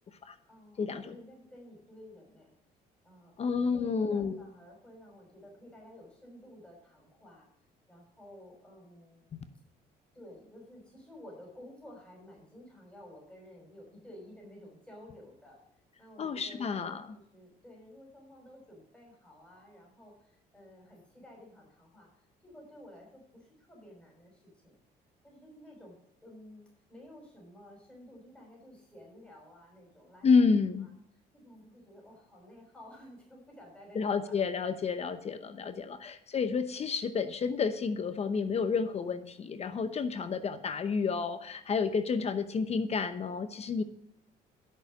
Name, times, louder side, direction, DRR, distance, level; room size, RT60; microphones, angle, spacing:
voice 1, 0.5-2.5 3.0-7.5 7.9-9.3 10.1-15.6 16.0-24.7 25.2-25.9 26.2-26.6 26.9-30.5 30.8-34.7 35.5-36.0, left 1 dB, 5° left, -2 dB, 5.6 m, -53 dB
voice 2, 3.4-4.4 9.3-9.4 16.2-17.0 30.2-30.9 33.9-43.8, left 5 dB, 40° left, 11 dB, 0.9 m, -30 dB
11.5 x 6.6 x 6.3 m, 0.73 s
cardioid pair, 110°, 17 cm